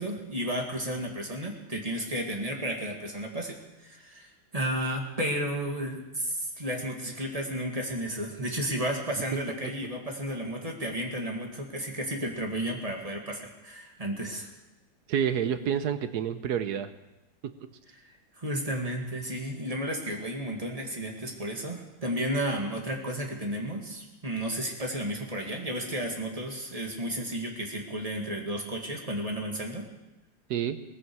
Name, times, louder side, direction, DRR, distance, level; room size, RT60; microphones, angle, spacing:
voice 1, 0.0-3.6 3.8-14.5 18.4-29.8, right 1 dB, 20° right, 1 dB, 2.1 m, -33 dB
voice 2, 15.1-16.9 30.5-30.8, right 8 dB, 75° right, 11 dB, 1.3 m, -28 dB
18.5 x 15.0 x 4.7 m, 0.99 s
omnidirectional pair, 1.8 m